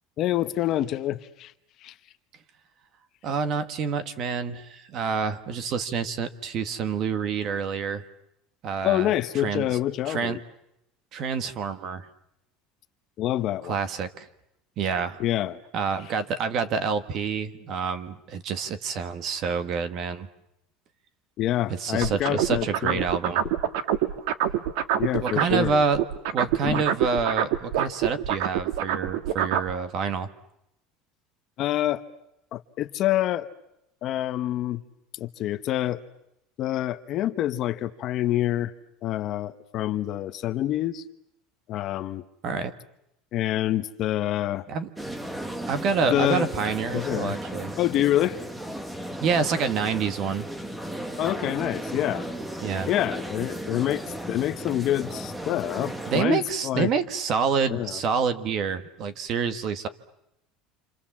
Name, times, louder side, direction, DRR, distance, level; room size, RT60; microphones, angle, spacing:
voice 1, 0.2-1.5 1.8-1.9 8.8-10.4 13.2-13.8 15.2-15.6 21.4-23.0 25.0-25.8 26.6-26.8 31.6-32.0 32.5-33.5 34.0-34.8 35.1-36.0 36.6-38.7 39.0-41.0 41.7-42.2 43.3-44.6 46.1-46.5 46.9-47.4 47.8-48.4 51.2-52.3 52.9-56.9 57.7-58.0, left 13 dB, 35° left, 10 dB, 1.0 m, -26 dB
voice 2, 3.2-8.0 8.6-9.1 9.4-9.8 10.0-10.4 11.1-12.1 13.6-14.3 14.8-15.2 15.7-20.3 21.7-23.4 25.2-26.0 26.3-30.3 42.4-42.7 44.7-44.9 45.7-47.7 49.2-50.5 52.6-52.9 56.1-59.9, right 5 dB, 35° right, 11 dB, 1.5 m, -27 dB
sound 1, 22.0-25.7 25.9-29.7, right 11 dB, 70° right, 1.7 m, -25 dB
sound 2, 45.0-56.2, right 1 dB, 5° right, 1.2 m, -35 dB
29.0 x 27.0 x 7.4 m, 0.83 s
cardioid pair, 175°, 0 cm